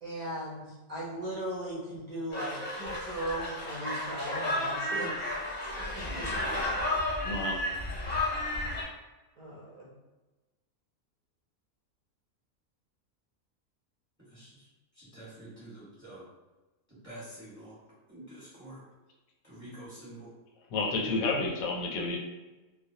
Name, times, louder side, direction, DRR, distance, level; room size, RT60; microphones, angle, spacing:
voice 1, 0.0-5.3 5.9-6.4 9.4-9.9, right 1 dB, 45° right, -6 dB, 0.6 m, -38 dB
sound 1, 2.3-8.8, left 1 dB, 40° left, 0.6 m, -32 dB
voice 2, 7.2-7.6 20.7-22.2, left 3 dB, 90° left, -1 dB, 1.0 m, -30 dB
voice 3, 14.3-14.7 14.9-16.2 16.9-17.8 18.1-18.8 19.4-20.3, right 1 dB, 10° right, -10 dB, 1.0 m, -47 dB
2.2 x 2.2 x 2.7 m, 1.1 s
omnidirectional pair, 1.4 m